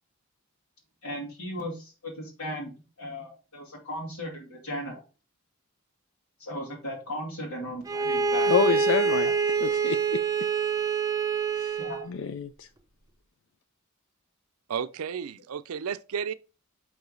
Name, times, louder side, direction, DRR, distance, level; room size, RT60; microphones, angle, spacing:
voice 1, 1.0-2.7 3.0-4.9 6.4-8.8 11.8-12.0, equal, 85° left, 2.5 m, -36 dB
Bowed string instrument, 7.9-12.1, right 5 dB, 15° right, 0.6 m, -26 dB
voice 2, 8.5-9.3 9.6-10.2 11.6-11.8 12.1-12.7, left 7 dB, 60° left, 0.4 m, -28 dB
voice 3, 14.7-16.3, right 7 dB, 90° right, 0.5 m, -32 dB
5.4 x 4.9 x 3.9 m
head